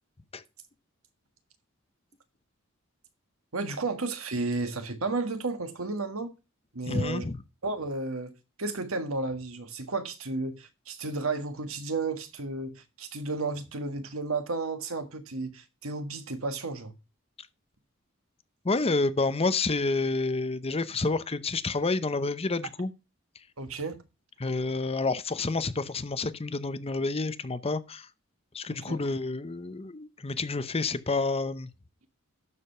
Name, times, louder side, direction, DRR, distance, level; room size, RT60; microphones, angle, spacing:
voice 1, 3.5-6.3 6.7-7.3 7.6-8.3 8.6-16.9 23.6-24.0 28.9-29.0, right 3 dB, 80° right, 1.6 m, -32 dB
voice 2, 6.9-7.4 18.6-22.9 24.4-28.1 28.5-31.7, left 3 dB, 30° left, 0.7 m, -29 dB
12.5 x 5.1 x 5.6 m
head